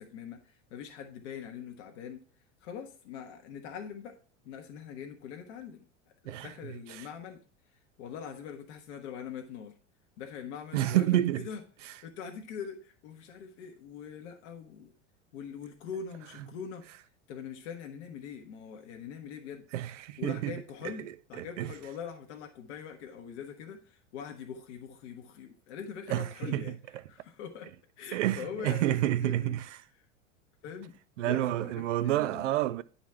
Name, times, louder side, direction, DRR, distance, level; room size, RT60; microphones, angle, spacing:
voice 1, 0.0-2.2 2.6-4.2 4.4-5.9 6.2-7.4 8.0-9.7 10.2-14.9 15.3-16.8 17.3-19.6 20.2-26.7 27.1-29.6 30.6-32.5, left 7 dB, 65° left, 1.2 m, -43 dB
voice 2, 10.7-11.5 19.7-20.6 20.8-20.9 21.4-21.7 26.1-26.6 26.9-27.0 28.1-29.8 31.2-32.8, right 13 dB, 75° right, 0.5 m, -29 dB
9.3 x 4.1 x 4.4 m
hypercardioid pair, 85°, 37 cm